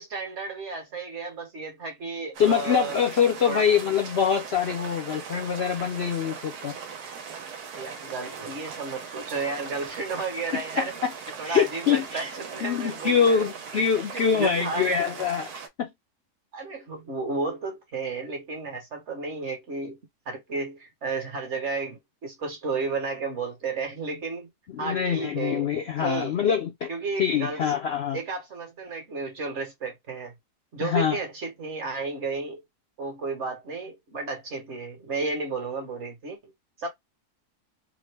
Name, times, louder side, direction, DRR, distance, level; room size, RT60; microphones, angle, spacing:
voice 1, 0.0-3.0 3.4-3.8 7.7-11.0 11.4-13.5 14.1-15.0 16.5-20.0 20.3-24.5 24.8-25.7 26.0-26.4 26.9-27.7 28.1-30.3 30.7-32.6 33.0-36.5 36.8-36.9, right 4 dB, 50° right, 1.3 m, -33 dB
sound 1, 2.3-15.7, right 6 dB, 80° right, 1.3 m, -39 dB
voice 2, 2.4-6.7 10.5-11.1 11.4-12.3 12.6-15.9 24.7-26.9 27.2-28.2 30.8-31.2, left 7 dB, 60° left, 0.7 m, -24 dB
3.7 x 2.1 x 3.3 m
omnidirectional pair, 1.6 m